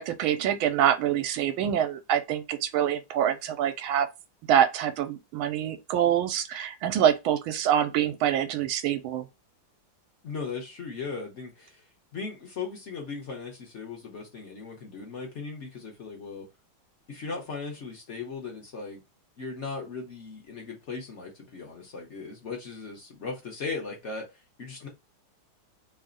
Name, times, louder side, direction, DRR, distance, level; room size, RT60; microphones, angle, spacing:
voice 1, 0.0-4.1 4.5-9.2, right 10 dB, 85° right, 1.4 m, -25 dB
voice 2, 10.2-11.8 12.1-16.5 17.1-19.0 19.4-24.3 24.6-24.9, left 4 dB, 50° left, 0.9 m, -37 dB
3.3 x 2.8 x 3.8 m
omnidirectional pair, 2.2 m